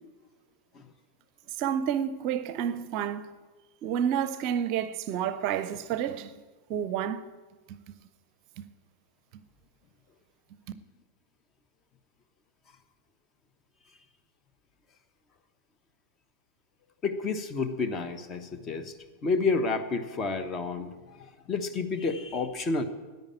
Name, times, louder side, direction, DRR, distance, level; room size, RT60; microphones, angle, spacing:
voice 1, 1.6-3.3 3.8-6.4 6.7-7.2 7.7-7.9 8.6-8.7, right 9 dB, 45° right, 0.6 m, -30 dB
voice 2, 17.0-18.9 19.2-22.8, left 4 dB, 25° left, 1.1 m, -30 dB
10.5 x 9.4 x 8.7 m
figure-of-eight pair, 90°, 0 cm